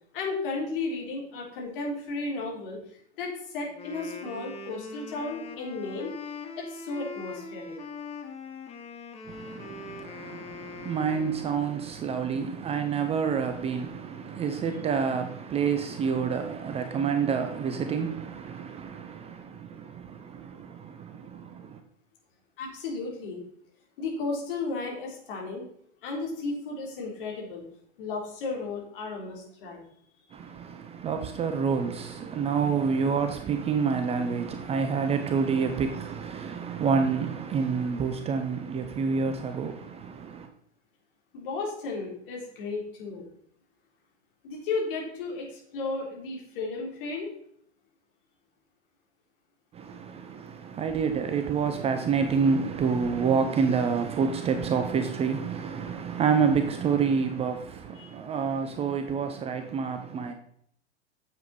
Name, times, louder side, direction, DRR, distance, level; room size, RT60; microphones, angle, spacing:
voice 1, 0.1-6.1 6.6-7.7 22.6-23.4 24.0-25.6 26.0-27.6 28.0-29.8 30.2-30.3 41.3-43.3 44.4-47.3 57.9-58.1, left 3 dB, 50° left, 3.7 m, -34 dB
Wind instrument woodwind instrument, 3.6-11.8, left 5 dB, 20° left, 1.3 m, -42 dB
voice 2, 9.3-21.8 30.3-40.5 49.7-60.3, right 6 dB, 15° right, 0.6 m, -28 dB
9.3 x 7.3 x 4.3 m
figure-of-eight pair, 95°, 35 cm